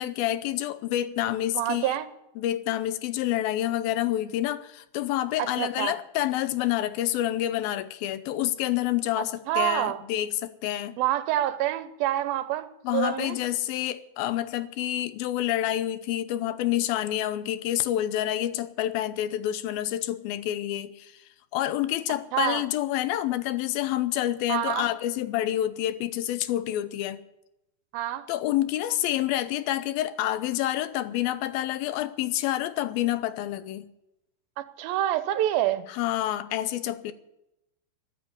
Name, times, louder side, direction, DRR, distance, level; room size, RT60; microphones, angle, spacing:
voice 1, 0.0-1.9 2.4-11.0 12.8-21.2 21.5-27.2 28.3-33.9 35.9-37.1, left 13 dB, 90° left, 2.6 m, -28 dB
voice 2, 1.5-2.1 5.4-5.9 9.5-10.0 11.0-13.4 22.3-22.6 24.5-24.9 27.9-28.3 34.6-35.9, right 13 dB, 90° right, 2.6 m, -27 dB
14.0 x 9.9 x 8.8 m
omnidirectional pair, 4.2 m